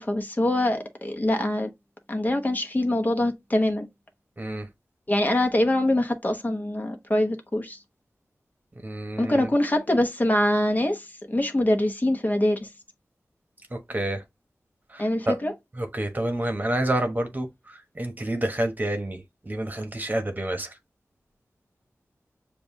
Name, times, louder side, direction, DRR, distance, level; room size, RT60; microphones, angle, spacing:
voice 1, 0.0-1.7 2.1-3.9 5.1-7.8 9.2-12.7 15.0-15.5, left 1 dB, 30° left, 1.1 m, -24 dB
voice 2, 4.4-4.7 8.8-9.5 13.7-14.2 14.9-15.4 15.8-20.7, right 1 dB, 30° right, 1.1 m, -29 dB
7.0 x 2.5 x 2.7 m
wide cardioid pair, 55°, 6 cm